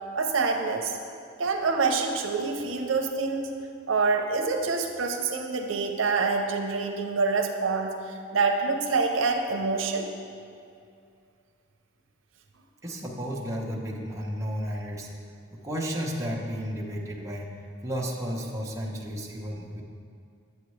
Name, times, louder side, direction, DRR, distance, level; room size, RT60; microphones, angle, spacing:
voice 1, 0.1-0.9 1.4-3.5 3.9-7.9 8.3-10.1, right 4 dB, 80° right, 4 dB, 0.6 m, -26 dB
voice 2, 12.8-15.1 15.5-17.6 17.8-19.8, equal, 15° right, -3 dB, 0.8 m, -33 dB
8.1 x 7.9 x 3.2 m, 2.4 s
head